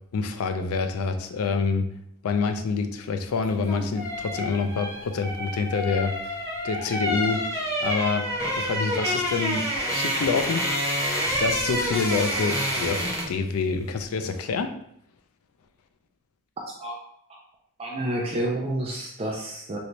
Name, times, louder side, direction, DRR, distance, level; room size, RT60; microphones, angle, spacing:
voice 1, 0.1-1.9 2.2-8.3 8.6-14.7, left 4 dB, 90° left, 8 dB, 0.4 m, -27 dB
sound 1, 3.4-13.4 13.7-13.9, equal, 15° left, 0.7 m, -28 dB
voice 2, 17.8-19.8, right 1 dB, 25° right, -1 dB, 0.4 m, -29 dB
3.2 x 2.6 x 3.0 m, 0.71 s
head